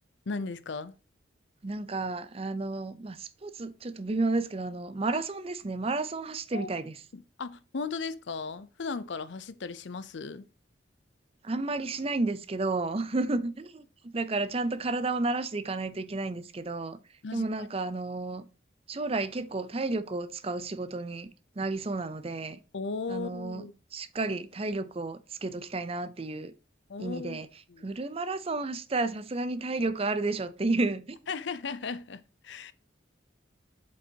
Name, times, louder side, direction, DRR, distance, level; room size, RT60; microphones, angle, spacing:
voice 1, 0.3-0.9 5.1-5.2 6.5-6.7 7.1-10.4 17.2-17.5 22.7-23.7 26.9-27.4 27.7-27.9 31.3-32.7, left 4 dB, 70° left, 0.6 m, -36 dB
voice 2, 1.6-7.0 11.4-17.0 17.3-18.5 18.9-22.6 23.1-26.5 27.0-27.5 27.8-31.2, right 3 dB, 30° right, 0.5 m, -32 dB
7.9 x 5.3 x 2.8 m
head